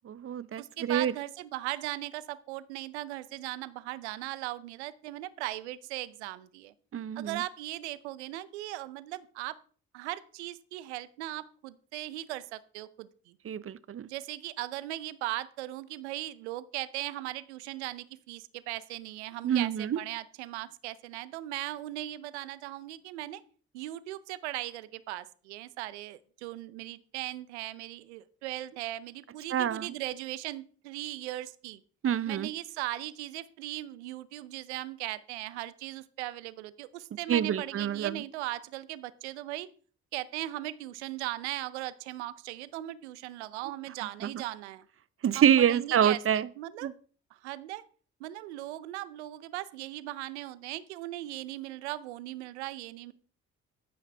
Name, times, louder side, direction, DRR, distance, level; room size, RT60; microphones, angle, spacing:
voice 1, 0.0-1.1 6.9-7.4 13.4-14.1 19.4-20.0 29.5-29.9 32.0-32.5 37.3-38.2 44.2-44.3 45.2-46.5 46.8-46.9, right 9 dB, 40° right, 0.7 m, -26 dB
voice 2, 0.6-6.7 7.1-9.6 9.9-13.4 14.1-23.4 23.7-31.8 32.3-39.7 40.1-44.8 45.3-46.9 47.3-47.8 48.2-53.1, right 16 dB, 90° right, 0.7 m, -38 dB
13.5 x 9.2 x 3.4 m
hypercardioid pair, 50°, 33 cm